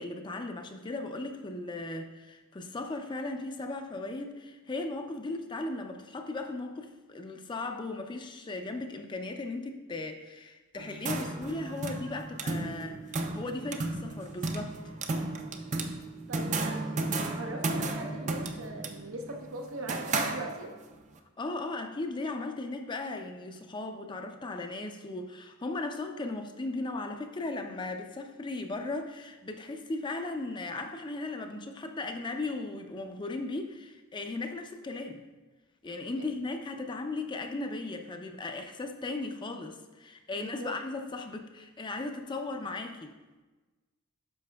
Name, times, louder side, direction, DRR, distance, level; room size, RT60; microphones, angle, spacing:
voice 1, 0.0-13.0 13.3-14.8 21.4-35.3 35.8-43.1, left 2 dB, 20° left, 5 dB, 0.4 m, -37 dB
sound 1, 10.8-20.9, right 2 dB, 35° right, 0.5 m, -34 dB
voice 2, 16.3-20.7 36.2-36.3 40.3-40.7, right 2 dB, 80° right, 3 dB, 0.8 m, -41 dB
9.8 x 6.3 x 2.3 m, 1.2 s
head